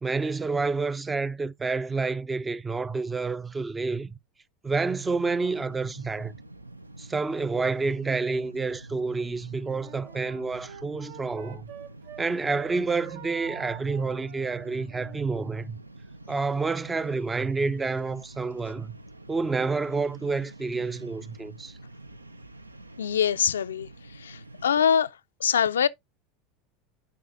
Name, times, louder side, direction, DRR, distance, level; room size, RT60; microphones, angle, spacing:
voice 1, 0.0-4.2 4.6-6.4 7.0-11.7 12.2-15.8 16.3-19.0 19.3-21.8, right 4 dB, 15° right, 0.4 m, -29 dB
sound 1, 4.9-24.7, right 2 dB, 90° right, 0.4 m, -47 dB
Wind instrument woodwind instrument, 9.6-12.2 12.5-15.2, right 10 dB, 60° right, 0.7 m, -45 dB
voice 2, 23.0-23.9 24.2-25.1 25.4-25.9, left 8 dB, 75° left, 0.3 m, -24 dB
12.0 x 4.9 x 2.5 m
figure-of-eight pair, 80°, 0 cm